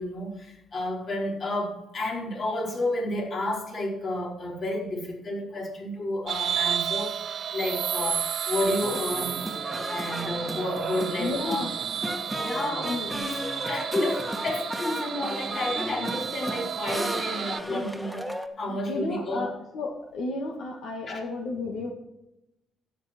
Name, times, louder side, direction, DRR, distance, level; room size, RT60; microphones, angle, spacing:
voice 1, 0.0-9.4 9.9-11.7 12.4-19.5 21.1-21.2, left 1 dB, 50° left, -1 dB, 4.6 m, -31 dB
sound 1, 6.3-17.6, right 8 dB, 60° right, 0.5 m, -32 dB
sound 2, 8.7-18.5, equal, ahead, 1.6 m, -35 dB
voice 2, 11.2-11.7 12.8-13.1 17.7-17.9 18.7-21.9, left 3 dB, 80° left, 0 dB, 2.0 m, -33 dB
13.0 x 9.5 x 4.5 m, 0.86 s
cardioid pair, 90°, 0 cm